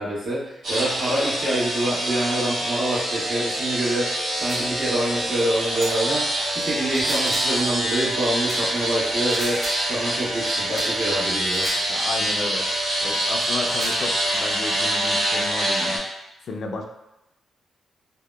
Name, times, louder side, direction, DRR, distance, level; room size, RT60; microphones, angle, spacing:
voice 1, 0.0-9.6 9.9-11.7, right 1 dB, 70° right, -9 dB, 1.1 m, -26 dB
sound 1, 0.6-16.0, right 1 dB, 85° right, 0.8 m, -25 dB
sound 2, 4.5-4.7 5.8-6.0 6.8-7.6 8.5-8.7 9.3-9.8 10.8-10.9 11.5-11.8 12.7-12.8 13.7-14.0, right 1 dB, 35° right, 0.6 m, -33 dB
voice 2, 11.9-12.7 13.0-16.0 16.5-16.9, left 3 dB, 60° left, 3 dB, 0.3 m, -32 dB
2.7 x 2.0 x 2.2 m, 0.92 s
cardioid pair, 105°, 0 cm